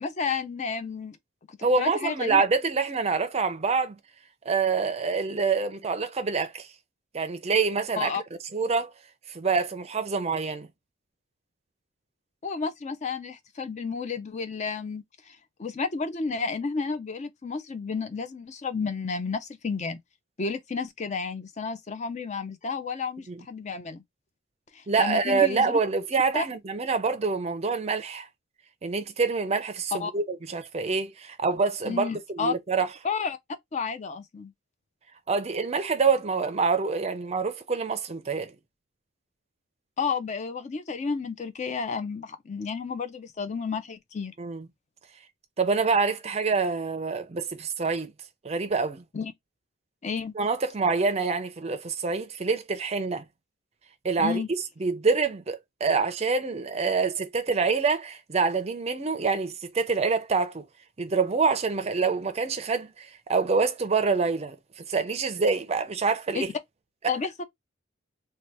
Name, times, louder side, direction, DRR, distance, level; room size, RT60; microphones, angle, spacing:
voice 1, 0.0-1.2 1.5-2.4 8.0-8.2 12.4-20.0 20.4-24.0 24.7-25.8 26.3-26.4 29.9-30.1 31.8-32.5 33.0-33.4 33.7-34.5 40.0-44.3 49.1-49.3 50.0-50.3 54.2-54.5 66.3-66.5 67.1-67.4, left 5 dB, 35° left, 0.4 m, -31 dB
voice 2, 1.6-4.0 4.5-6.7 7.1-8.1 8.5-8.9 9.3-10.7 23.3-23.4 24.9-28.3 28.8-32.9 35.3-38.5 44.4-44.7 45.6-48.1 48.4-49.0 50.4-53.2 54.0-54.4 54.8-60.6 61.0-66.5, right 4 dB, 30° right, 0.5 m, -26 dB
2.8 x 2.2 x 3.2 m
head